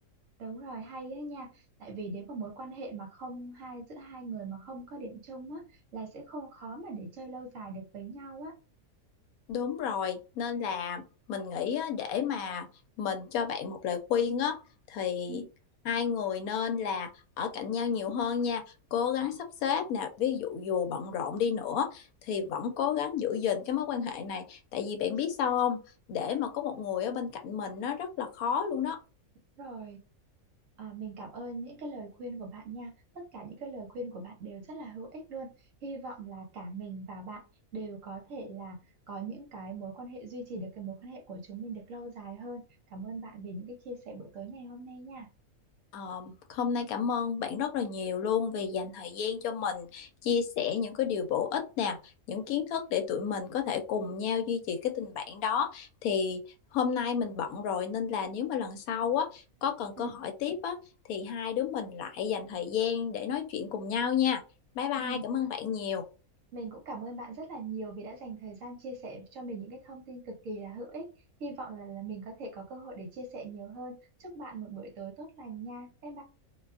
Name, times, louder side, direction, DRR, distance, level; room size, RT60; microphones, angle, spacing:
voice 1, 0.4-5.6 5.9-8.6 15.3-15.4 29.6-30.0 30.8-35.5 35.8-37.4 37.7-42.6 42.9-45.3 60.0-60.1 65.0-65.2 66.5-71.1 71.4-76.2, right 3 dB, 65° right, 1.2 m, -41 dB
voice 2, 9.5-12.7 13.0-14.6 14.9-15.4 15.8-17.1 17.4-18.6 18.9-25.8 26.1-29.0 45.9-52.0 52.3-56.4 56.7-60.8 61.1-64.4 64.7-66.0, left 7 dB, 75° left, 1.0 m, -31 dB
2.6 x 2.3 x 2.3 m
omnidirectional pair, 1.6 m